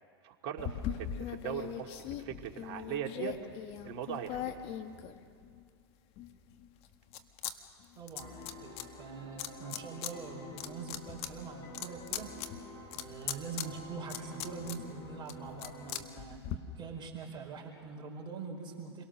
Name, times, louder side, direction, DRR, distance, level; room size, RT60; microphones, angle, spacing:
voice 1, 0.2-0.7 1.2-3.3 3.8-4.4, right 10 dB, 50° right, 2 dB, 2.6 m, -39 dB
sound 1, 0.6-5.6 6.2-7.5 7.8-8.8 9.4-10.1 10.5-16.6, left 10 dB, 45° left, 1.7 m, -40 dB
voice 2, 8.0-12.3 12.9-16.4 16.7-19.0, right 5 dB, 35° right, 1 dB, 4.7 m, -44 dB
sound 2, 8.2-15.9, left 1 dB, 30° left, 6.5 m, -49 dB
30.0 x 23.0 x 6.5 m, 2.3 s
hypercardioid pair, 110°, 14 cm